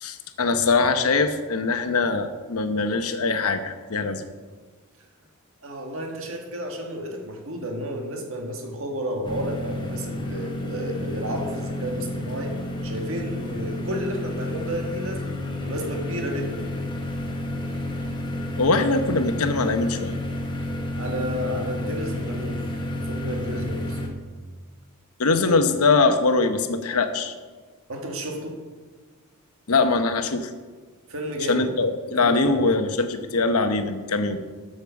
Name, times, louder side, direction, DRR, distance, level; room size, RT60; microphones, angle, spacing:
voice 1, 0.0-4.2 18.6-20.2 25.2-27.3 29.7-30.5 31.5-34.4, left 3 dB, 80° left, 8 dB, 0.9 m, -22 dB
voice 2, 5.6-12.5 12.8-15.4 15.6-16.6 21.0-22.7 22.9-24.0 27.9-28.6 31.1-31.7 32.2-32.6, equal, 65° right, 2 dB, 1.7 m, -31 dB
sound 1, 9.2-24.1, left 1 dB, 20° left, 1.2 m, -31 dB
8.3 x 6.9 x 7.0 m, 1.4 s
head